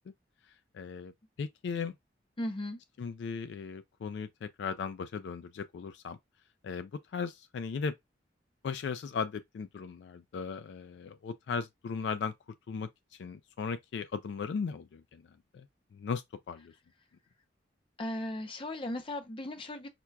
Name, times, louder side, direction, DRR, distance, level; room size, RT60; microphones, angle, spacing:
voice 1, 0.7-1.1 1.4-1.9 3.0-6.2 6.6-7.9 8.6-12.3 12.7-12.9 13.2-15.2 15.5-15.7 15.9-16.7, left 5 dB, 70° left, 0.3 m, -37 dB
voice 2, 2.4-2.8 18.0-19.9, left 1 dB, 30° left, 0.6 m, -36 dB
5.9 x 2.2 x 2.3 m
head